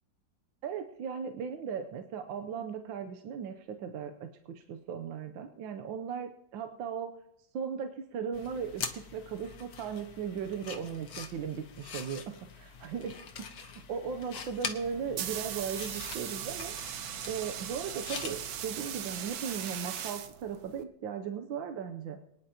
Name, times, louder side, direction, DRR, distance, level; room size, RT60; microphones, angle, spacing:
voice 1, 0.6-7.1 7.5-13.2 13.6-16.7 17.3-22.2, right 7 dB, 85° right, 7 dB, 1.5 m, -37 dB
sound 1, 8.3-18.8, left 6 dB, 55° left, 1.4 m, -44 dB
sound 2, 14.8-20.8, right 9 dB, 65° right, 1.1 m, -39 dB
23.5 x 10.5 x 2.9 m, 0.80 s
omnidirectional pair, 2.1 m